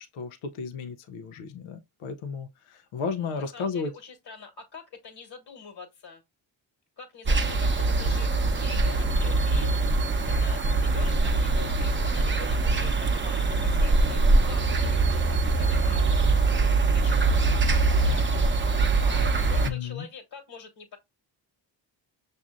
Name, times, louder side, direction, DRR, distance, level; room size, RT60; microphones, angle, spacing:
voice 1, 0.0-3.9 19.6-20.1, left 5 dB, 85° left, 0.7 m, -34 dB
voice 2, 3.2-6.2 7.0-9.7 10.4-18.4 19.0-21.0, left 6 dB, 50° left, 1.4 m, -45 dB
sound 1, 7.3-19.7, right 3 dB, 25° right, 0.7 m, -23 dB
6.0 x 2.6 x 2.4 m
supercardioid pair, 55°, 48 cm